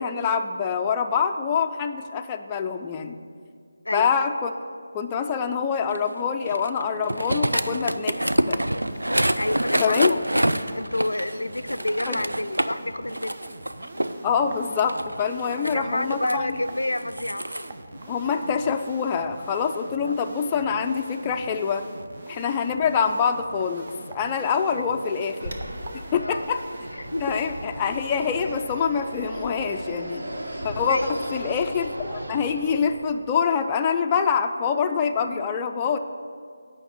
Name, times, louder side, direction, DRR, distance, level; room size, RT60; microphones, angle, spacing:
voice 1, 0.0-3.2 3.9-4.5 4.9-8.6 9.8-10.2 12.1-12.2 14.2-16.6 18.1-21.8 22.3-25.5 26.1-26.6 27.2-30.2 30.6-31.0 31.3-36.0, left 6 dB, 20° left, 4 dB, 0.4 m, -25 dB
sound 1, 5.9-12.8 13.1-14.2 14.8-16.3 17.0-17.7, right 1 dB, 85° right, 0.4 m, -26 dB
sound 2, 8.7-28.6, right 2 dB, 40° right, 0.8 m, -42 dB
voice 2, 9.4-10.4 10.7-13.4 15.6-17.6 17.9-18.0 18.3-18.4 20.0-20.1 24.8-24.9 26.2-26.5 26.9-27.4 30.9-31.2 35.2-35.5, left 1 dB, 80° left, 13 dB, 0.4 m, -29 dB
Fixed-wing aircraft airplane, 25.4-33.2, right 1 dB, 65° right, 1.3 m, -36 dB
9.0 x 5.8 x 7.8 m, 2.2 s
figure-of-eight pair, 160°, 0 cm